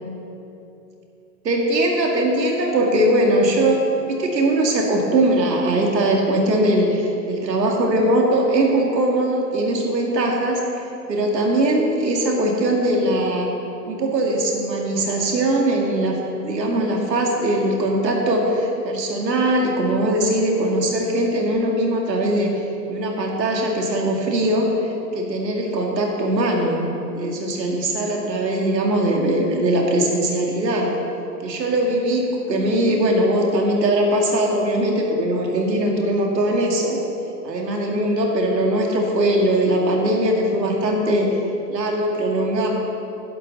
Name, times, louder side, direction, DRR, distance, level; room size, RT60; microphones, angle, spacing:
voice 1, 1.4-3.8 4.1-10.6 11.1-13.5 13.9-22.5 22.9-26.8 27.1-30.9 31.4-37.0 37.4-41.3 41.7-42.7, right 1 dB, 80° right, 0 dB, 2.3 m, -20 dB
11.0 x 11.0 x 3.8 m, 2.8 s
hypercardioid pair, 175°, 49 cm